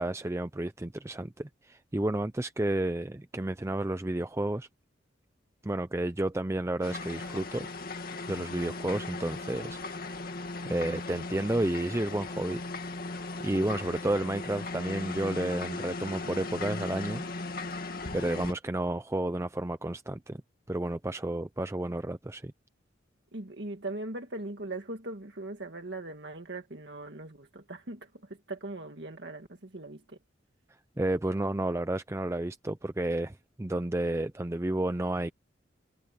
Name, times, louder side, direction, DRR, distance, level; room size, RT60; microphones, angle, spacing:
voice 1, 0.0-4.7 5.6-7.7 8.3-9.8 10.7-12.6 13.4-17.2 17.7-20.4 20.7-22.5 31.0-35.3, right 1 dB, 15° right, 0.5 m, -31 dB
sound 1, 6.8-18.5, left 3 dB, 50° left, 2.2 m, -37 dB
voice 2, 23.3-30.2, right 2 dB, 60° right, 1.8 m, -40 dB
head